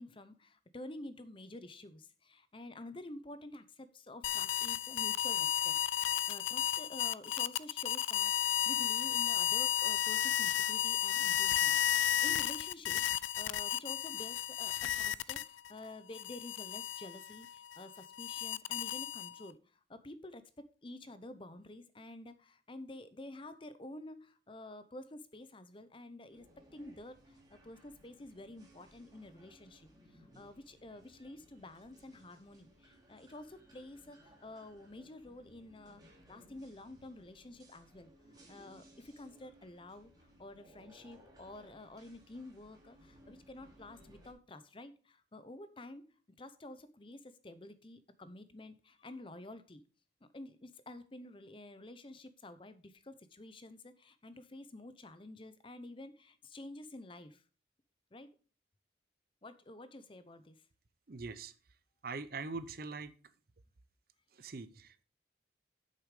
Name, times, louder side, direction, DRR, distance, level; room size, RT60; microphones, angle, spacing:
voice 1, 0.0-11.8 12.2-19.6 19.9-20.4 20.8-26.4 26.7-29.9 30.2-38.1 38.5-40.1 40.4-46.1 46.4-49.8 50.3-57.4 58.1-58.3 59.4-60.6, left 1 dB, 25° left, 0.7 m, -50 dB
sound 1, 4.2-15.7 16.1-19.5, left 10 dB, 90° left, 0.4 m, -33 dB
sound 2, 26.3-44.3, equal, 20° right, 2.6 m, -62 dB
voice 2, 61.1-61.5 62.0-63.1 64.3-65.0, right 4 dB, 50° right, 0.6 m, -42 dB
8.5 x 6.7 x 4.9 m
head